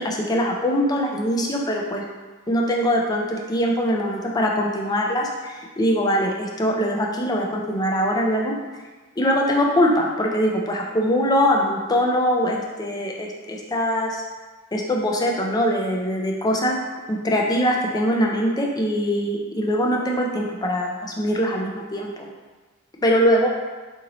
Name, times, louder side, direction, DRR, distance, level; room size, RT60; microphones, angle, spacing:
voice 1, 0.0-2.1 2.5-8.5 9.2-14.2 14.7-16.7 17.1-22.3 23.0-23.5, equal, 15° left, 0 dB, 0.3 m, -22 dB
4.0 x 2.6 x 2.9 m, 1.3 s
head